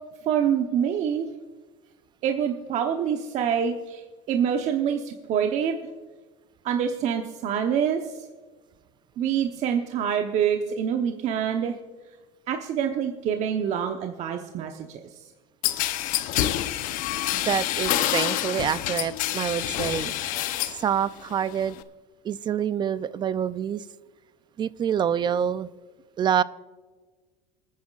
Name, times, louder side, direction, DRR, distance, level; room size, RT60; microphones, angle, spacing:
voice 1, 0.2-1.3 2.2-5.8 6.6-8.3 9.2-11.8 12.5-15.3, right 8 dB, 45° right, 4 dB, 1.0 m, -26 dB
sound 1, 15.6-20.8 21.2-21.8, left 13 dB, 55° left, 0.8 m, -27 dB
voice 2, 17.3-20.1 20.8-21.8 22.2-23.8 24.6-25.7 26.2-26.4, right 8 dB, 30° right, 17 dB, 0.4 m, -26 dB
27.0 x 9.4 x 2.4 m, 1.4 s
supercardioid pair, 115°, 16 cm